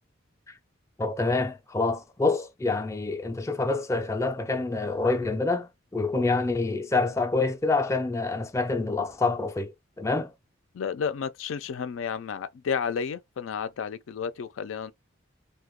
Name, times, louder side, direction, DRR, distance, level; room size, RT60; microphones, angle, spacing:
voice 1, 1.0-10.3, left 3 dB, 15° left, 0.4 m, -27 dB
voice 2, 10.7-14.9, left 6 dB, 80° left, 0.4 m, -31 dB
2.9 x 2.2 x 3.5 m
head